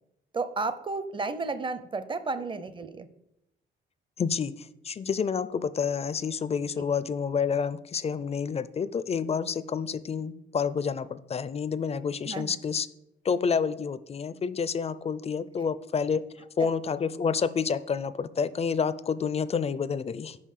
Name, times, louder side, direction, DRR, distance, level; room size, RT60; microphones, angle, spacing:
voice 1, 0.3-3.1 12.2-12.6 16.6-16.7, right 3 dB, 25° right, 12 dB, 0.6 m, -32 dB
voice 2, 4.2-12.9 13.2-16.2 16.6-20.4, left 6 dB, 30° left, 16 dB, 0.4 m, -29 dB
5.6 x 5.2 x 6.6 m, 0.83 s
cardioid pair, 90°, 20 cm